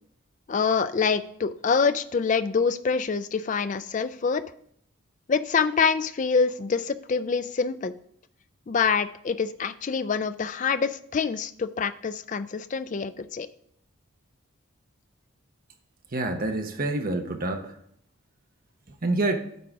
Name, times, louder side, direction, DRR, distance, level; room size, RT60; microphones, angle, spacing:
voice 1, 0.5-4.4 5.3-7.9 8.7-13.5, left 5 dB, 35° left, 13 dB, 0.4 m, -26 dB
voice 2, 16.1-17.7 19.0-19.4, right 2 dB, 40° right, 5 dB, 0.9 m, -27 dB
9.3 x 3.8 x 5.9 m, 0.68 s
head